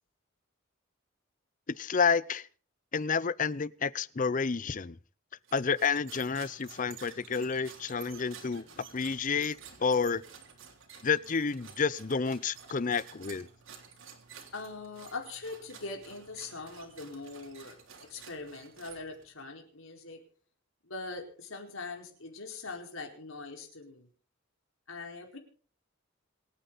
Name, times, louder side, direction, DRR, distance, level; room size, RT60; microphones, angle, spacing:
voice 1, 1.7-2.5 2.9-5.0 5.5-10.2 11.0-13.5, left 5 dB, 40° left, 0.6 m, -30 dB
sound 1, 5.4-19.4, right 6 dB, 75° right, 3.4 m, -52 dB
voice 2, 14.5-20.2 20.8-24.1 24.9-25.4, left 3 dB, 80° left, 4.7 m, -42 dB
26.5 x 9.2 x 4.0 m
head